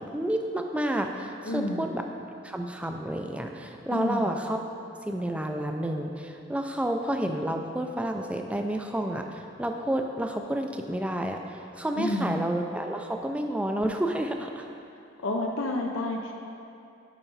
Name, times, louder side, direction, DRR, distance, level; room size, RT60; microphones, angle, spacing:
voice 1, 0.0-2.0 2.4-4.6 5.1-14.7, right 1 dB, 5° right, 4 dB, 0.4 m, -30 dB
voice 2, 1.4-1.9 3.9-4.3 12.0-12.4 15.2-16.3, left 2 dB, 75° left, 1 dB, 0.6 m, -30 dB
7.1 x 5.7 x 4.1 m, 2.6 s
head